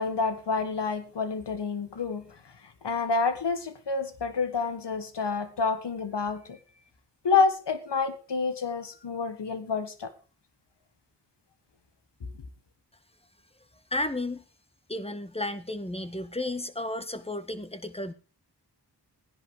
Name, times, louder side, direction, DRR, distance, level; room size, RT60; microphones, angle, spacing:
voice 1, 0.0-2.2 2.8-6.6 7.2-10.1, left 4 dB, 85° left, 1.8 m, -28 dB
voice 2, 13.9-14.4 14.9-18.1, left 1 dB, 15° left, 1.7 m, -33 dB
16.0 x 10.5 x 5.0 m
cardioid pair, 45°, 41 cm